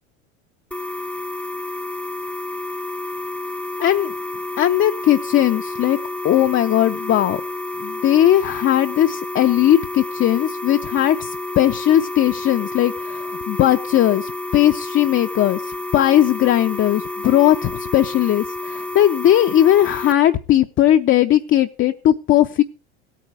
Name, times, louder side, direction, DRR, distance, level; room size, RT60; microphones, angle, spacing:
sound 1, 0.7-20.1, left 2 dB, 5° left, 0.8 m, -30 dB
voice 1, 3.8-4.1 4.6-6.0 6.2-7.4 7.8-22.6, left 12 dB, 35° left, 7 dB, 0.7 m, -18 dB
16.0 x 9.2 x 4.8 m, 0.34 s
supercardioid pair, 100°, 34 cm